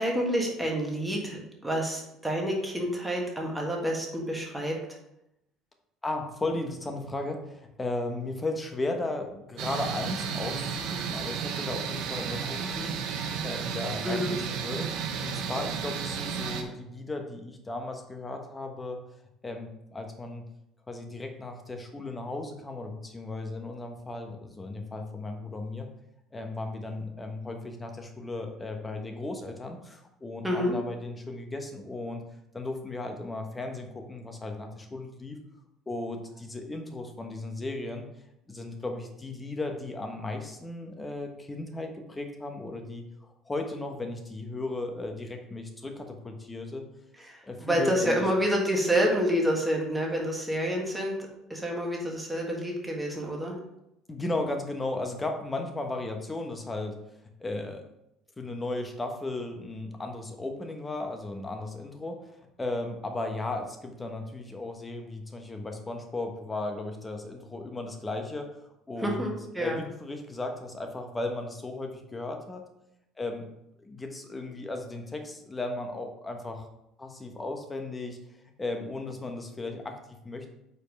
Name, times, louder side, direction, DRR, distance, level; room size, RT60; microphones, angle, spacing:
voice 1, 0.0-4.8 14.0-14.4 30.4-30.8 47.2-53.6 69.0-69.9, equal, 10° right, -1 dB, 1.8 m, -28 dB
voice 2, 6.0-19.0 19.4-20.4 20.9-25.9 26.3-32.2 32.5-35.4 35.9-38.0 38.5-46.8 47.4-48.3 54.1-57.0 57.4-57.8 58.4-62.3 62.6-69.3 69.6-72.6 73.2-73.5 73.8-76.7 77.0-80.5, left 2 dB, 20° left, 4 dB, 1.1 m, -36 dB
sound 1, 9.6-16.6, right 6 dB, 70° right, 0.9 m, -33 dB
5.4 x 4.3 x 5.3 m, 0.84 s
supercardioid pair, 90°, 0 cm